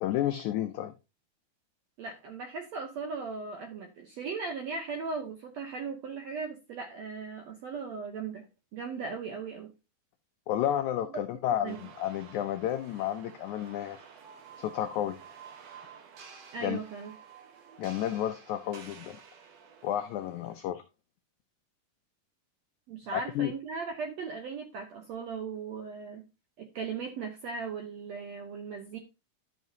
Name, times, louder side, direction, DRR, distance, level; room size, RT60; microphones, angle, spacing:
voice 1, 0.0-0.9 10.5-14.0 14.6-15.2 16.6-16.8 17.8-19.2 19.8-20.8 23.1-23.5, left 11 dB, 90° left, 1.7 m, -31 dB
voice 2, 2.0-8.5 8.7-9.7 11.1-11.2 11.6-11.8 16.5-17.1 22.9-26.2 26.6-29.0, right 5 dB, 75° right, 1.6 m, -38 dB
sound 1, 11.7-20.6, right 6 dB, 60° right, 1.9 m, -51 dB
12.0 x 6.0 x 2.7 m
omnidirectional pair, 4.1 m